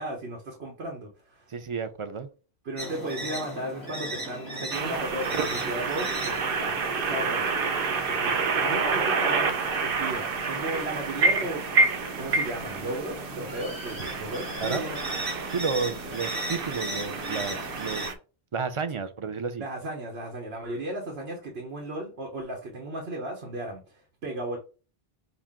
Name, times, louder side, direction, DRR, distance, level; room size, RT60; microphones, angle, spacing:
voice 1, 0.0-1.5 2.6-6.8 7.0-7.5 8.0-8.3 8.6-11.7 12.2-15.0 19.6-24.6, right 1 dB, 90° right, 1.3 m, -35 dB
voice 2, 1.5-2.3 14.6-14.9 15.5-18.1 18.5-19.6, right 5 dB, 40° right, 0.5 m, -31 dB
sound 1, 2.8-18.1, equal, 20° right, 2.4 m, -38 dB
sound 2, 4.7-18.1, right 4 dB, 65° right, 0.9 m, -28 dB
5.9 x 2.5 x 3.6 m
omnidirectional pair, 1.0 m